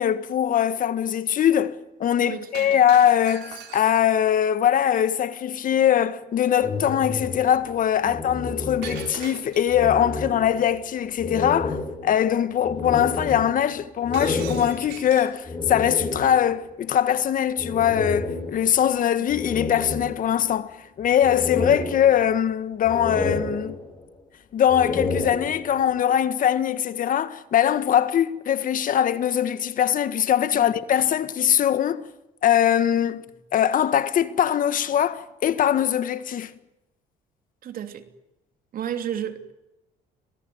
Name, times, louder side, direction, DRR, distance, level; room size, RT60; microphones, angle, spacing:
voice 1, 0.0-23.8 24.5-32.0 32.4-33.2 33.5-36.5, left 10 dB, 55° left, 1.6 m, -22 dB
voice 2, 2.2-2.8 8.0-8.1 30.5-30.8 37.6-38.1 38.7-39.5, right 9 dB, 55° right, 3.0 m, -33 dB
Shatter, 2.5-4.2 8.8-9.9 14.1-15.4, right 10 dB, 80° right, 4.2 m, -41 dB
sound 1, 6.6-9.4 9.7-10.8 11.2-16.6 17.6-18.9 19.3-20.6 21.0-22.5 22.8-24.1 24.6-25.9, left 3 dB, 25° left, 7.8 m, -31 dB
26.5 x 18.5 x 9.5 m
cardioid pair, 110°, 17 cm